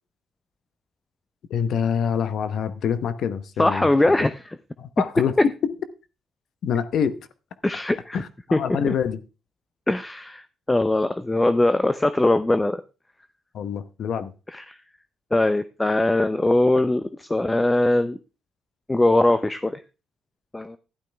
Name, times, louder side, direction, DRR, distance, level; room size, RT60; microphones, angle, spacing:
voice 1, 1.5-3.9 4.2-4.3 4.8-5.5 6.6-7.2 8.1-9.2 13.5-14.3, left 7 dB, 70° left, 12 dB, 1.0 m, -25 dB
voice 2, 3.6-4.6 7.6-8.2 8.5-8.9 9.9-12.8 14.5-14.8 15.3-18.2 18.9-19.8 20.5-20.8, left 2 dB, 15° left, 12 dB, 0.5 m, -21 dB
12.0 x 11.5 x 3.4 m, 0.32 s
cardioid pair, 90°, 0 cm